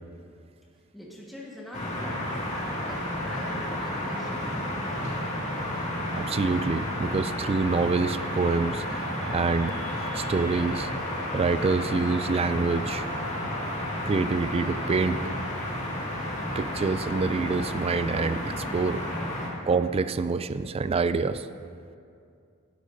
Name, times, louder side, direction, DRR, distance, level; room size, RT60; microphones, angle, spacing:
voice 1, 0.9-5.3, equal, ahead, -5 dB, 1.5 m, -43 dB
sound 1, 1.7-19.5, left 1 dB, 35° left, 2.2 m, -32 dB
voice 2, 6.1-8.8 9.3-10.9 11.3-13.1 14.0-15.2 16.5-19.0 19.7-21.5, right 4 dB, 25° right, 12 dB, 0.3 m, -26 dB
sound 2, 7.4-15.6, right 2 dB, 75° right, 2.5 m, -45 dB
17.5 x 11.5 x 2.7 m, 2.4 s
head